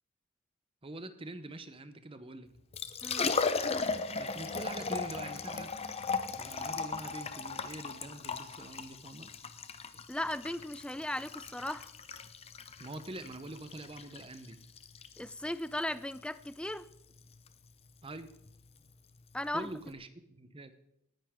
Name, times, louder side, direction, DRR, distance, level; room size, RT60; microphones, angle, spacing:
voice 1, 0.8-2.5 4.1-5.7 6.4-9.3 12.8-14.6 18.0-18.3 19.5-20.7, right 2 dB, 25° right, 11 dB, 0.8 m, -45 dB
Liquid, 2.5-19.9, left 4 dB, 30° left, 0.8 m, -38 dB
voice 2, 3.0-3.4 10.1-11.9 15.2-16.9 19.3-19.7, left 1 dB, 5° left, 15 dB, 0.4 m, -37 dB
19.0 x 10.5 x 3.7 m, 0.78 s
head